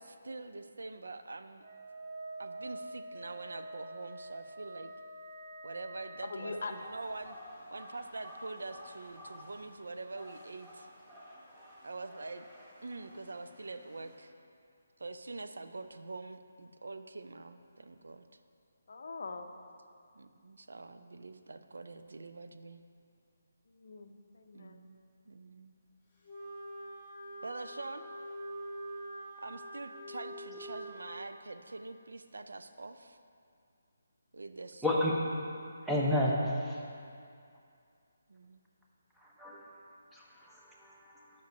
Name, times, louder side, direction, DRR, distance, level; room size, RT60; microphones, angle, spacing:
voice 1, 0.0-1.6 2.4-4.9 5.6-7.4 7.7-10.9 11.8-12.4 12.8-14.3 15.0-18.2 20.2-22.8 24.5-25.0 25.3-25.7 27.4-28.1 29.4-33.2 34.3-34.8 38.3-38.6, right 3 dB, 85° right, 9 dB, 0.3 m, -45 dB
Wind instrument woodwind instrument, 1.6-6.9, right 1 dB, 50° right, 1.2 m, -46 dB
voice 2, 6.2-6.7 18.9-19.5 23.8-24.8, left 4 dB, 65° left, 6 dB, 0.5 m, -42 dB
sound 1, 6.5-14.1, equal, 25° right, 1.1 m, -53 dB
Wind instrument woodwind instrument 2, 26.2-31.1, right 1 dB, 15° left, 1.2 m, -44 dB
voice 3, 34.8-35.1 35.8-36.8 39.1-41.4, left 1 dB, 5° right, -5 dB, 0.7 m, -32 dB
5.2 x 5.2 x 5.1 m, 2.4 s
hypercardioid pair, 160°, 0 cm